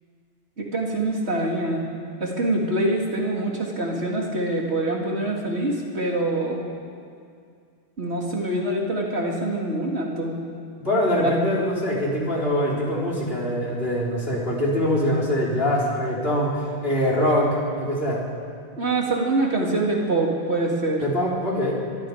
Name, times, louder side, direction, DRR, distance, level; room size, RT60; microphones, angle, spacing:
voice 1, 0.6-1.9 2.2-6.6 8.0-10.4 11.2-11.3 18.8-21.0, right 2 dB, 80° right, -1 dB, 3.2 m, -25 dB
voice 2, 10.8-18.2 21.0-21.8, equal, 60° left, -4 dB, 4.8 m, -23 dB
25.0 x 21.5 x 5.2 m, 2.3 s
omnidirectional pair, 1.1 m